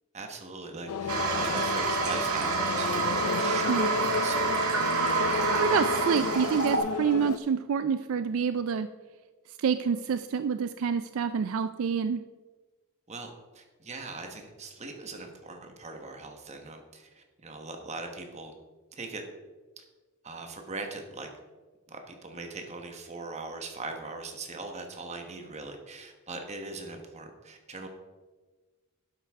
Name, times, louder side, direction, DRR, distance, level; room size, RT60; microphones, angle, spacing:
voice 1, 0.1-4.5 13.1-18.5 18.9-19.2 19.8-19.9 20.2-21.3 21.9-27.9, right 3 dB, 30° right, 4 dB, 1.2 m, -40 dB
sound 1, 0.9-7.4, left 5 dB, 85° left, 0.4 m, -32 dB
Toilet flush, 1.1-6.8, right 4 dB, 90° right, 1.7 m, -28 dB
voice 2, 5.6-8.9 9.6-12.2, right 6 dB, 65° right, 11 dB, 0.3 m, -27 dB
11.0 x 8.0 x 3.5 m, 1.3 s
head